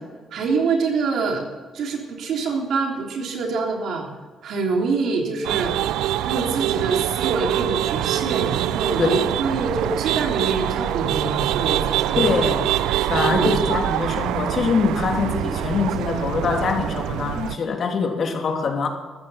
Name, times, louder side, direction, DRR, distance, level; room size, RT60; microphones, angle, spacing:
voice 1, 0.3-1.4 1.7-4.1 4.4-5.7 6.2-12.4 13.2-13.5, right 4 dB, 70° right, 3.5 m, -25 dB
sound 1, 5.4-17.6, right 13 dB, 90° right, 0.4 m, -24 dB
voice 2, 12.2-12.7 13.0-18.9, left 4 dB, 55° left, 2.7 m, -23 dB
14.5 x 13.5 x 5.7 m
cardioid pair, 90°, 0 cm